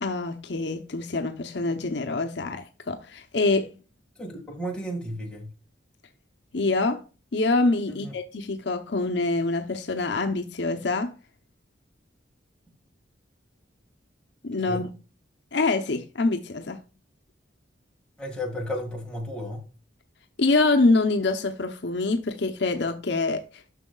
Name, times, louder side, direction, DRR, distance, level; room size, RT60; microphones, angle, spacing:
voice 1, 0.0-3.7 6.5-7.0 7.3-11.1 14.4-14.9 15.5-16.8 20.4-23.4, left 3 dB, 60° left, 0.7 m, -25 dB
voice 2, 4.2-5.5 7.9-8.1 14.7-14.9 18.2-19.6, equal, 5° left, 2.0 m, -33 dB
10.0 x 6.2 x 2.3 m
head